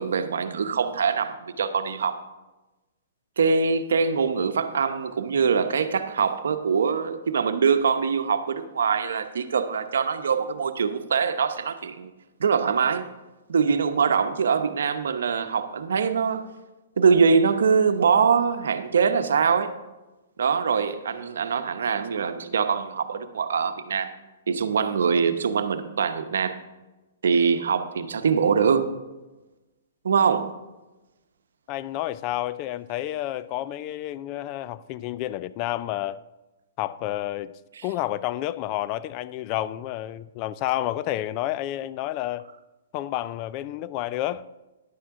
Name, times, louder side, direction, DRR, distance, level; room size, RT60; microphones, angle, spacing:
voice 1, 0.0-2.2 3.4-12.1 12.4-13.1 13.5-16.4 17.0-19.7 20.4-24.1 24.5-26.6 27.2-28.9 30.0-30.5 37.8-37.9, right 6 dB, 80° right, 0.9 m, -23 dB
voice 2, 31.7-36.2 36.8-37.5 37.8-42.5 42.9-44.4, left 14 dB, 35° left, 0.3 m, -30 dB
11.0 x 8.7 x 3.7 m
hypercardioid pair, 145°, 0 cm